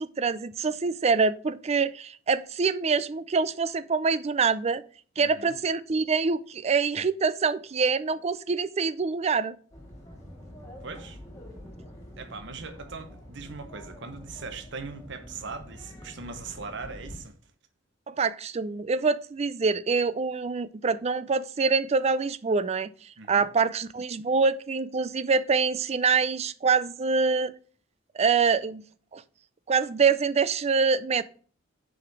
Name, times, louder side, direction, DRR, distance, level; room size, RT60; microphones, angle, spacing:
voice 1, 0.0-4.8 5.2-9.6 18.1-22.9 23.3-27.5 28.1-28.8 29.1-29.2 29.7-31.2, right 5 dB, 30° right, 0.4 m, -25 dB
voice 2, 5.2-5.6 10.8-11.2 12.2-17.4 23.2-23.5, right 4 dB, 60° right, 1.0 m, -40 dB
sound 1, 9.7-17.2, equal, 15° left, 2.5 m, -46 dB
6.2 x 5.0 x 6.1 m
head